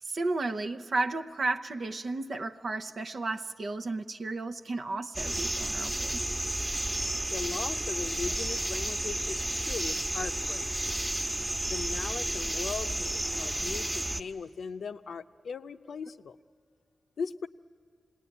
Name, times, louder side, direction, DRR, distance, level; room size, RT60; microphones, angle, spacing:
voice 1, 0.0-6.2, right 3 dB, 65° right, 0.7 m, -33 dB
sound 1, 5.1-14.2, right 1 dB, 30° right, 1.2 m, -32 dB
voice 2, 7.3-10.9 11.7-16.4 17.2-17.5, left 5 dB, 75° left, 0.6 m, -38 dB
26.5 x 19.0 x 10.0 m
cardioid pair, 50°, 0 cm